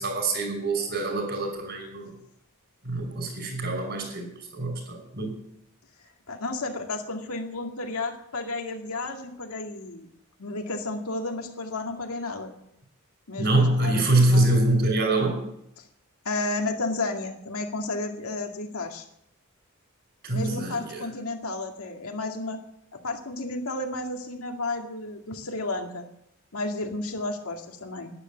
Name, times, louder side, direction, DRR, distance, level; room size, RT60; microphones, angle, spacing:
voice 1, 0.0-2.1 2.8-5.4 13.4-15.4 20.2-21.0, right 2 dB, 50° right, 3 dB, 5.7 m, -24 dB
voice 2, 6.3-10.1 10.4-12.5 13.3-14.5 15.8-15.9 16.2-19.1 20.3-22.6 22.9-26.1 26.5-28.1, left 2 dB, 85° left, 3 dB, 2.2 m, -32 dB
11.5 x 10.5 x 9.1 m, 0.77 s
head